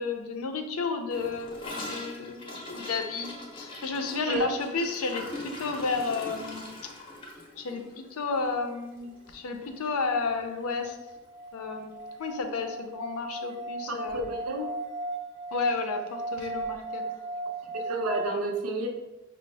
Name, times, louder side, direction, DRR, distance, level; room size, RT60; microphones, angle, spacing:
voice 1, 0.0-5.3 5.6-6.6 7.6-7.8 8.1-11.0 11.5-14.2 15.5-17.0, left 4 dB, 80° left, 6 dB, 0.5 m, -32 dB
Gurgling / Toilet flush, 1.1-9.4 9.6-9.8 10.0-10.5 10.8-10.9 11.2-11.3 12.2-12.3, left 2 dB, 25° left, 0.6 m, -42 dB
sound 1, 9.9-18.3, right 2 dB, 30° right, 0.3 m, -37 dB
voice 2, 13.9-14.7 17.9-18.9, right 1 dB, 80° right, 3 dB, 0.6 m, -30 dB
5.0 x 2.0 x 3.2 m, 1.0 s
head